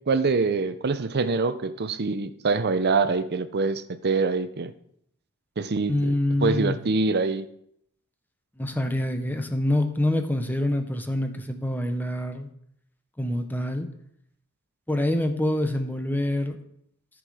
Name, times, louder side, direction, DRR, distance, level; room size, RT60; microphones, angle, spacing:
voice 1, 0.1-4.7 5.6-6.1 6.4-7.5, right 4 dB, 50° right, 13 dB, 0.6 m, -25 dB
voice 2, 5.9-6.8 8.6-12.5 13.2-13.9 14.9-16.6, left 1 dB, 10° left, 6 dB, 0.9 m, -26 dB
13.5 x 6.2 x 4.9 m, 0.72 s
head